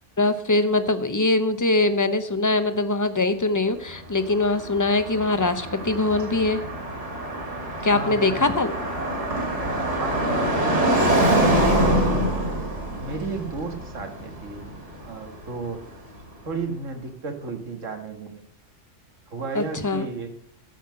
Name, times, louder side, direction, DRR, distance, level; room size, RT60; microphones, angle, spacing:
voice 1, 0.2-6.6 7.8-8.7 19.5-20.0, left 2 dB, 20° left, 10 dB, 0.6 m, -22 dB
Car passing by, 3.9-15.9, right 1 dB, 70° right, 3.3 m, -25 dB
voice 2, 7.9-8.5 10.0-11.2 11.7-12.6 13.0-16.0 16.4-18.4 19.3-20.3, right 3 dB, 90° right, 5 dB, 2.0 m, -33 dB
13.5 x 5.8 x 7.5 m, 0.68 s
omnidirectional pair, 1.3 m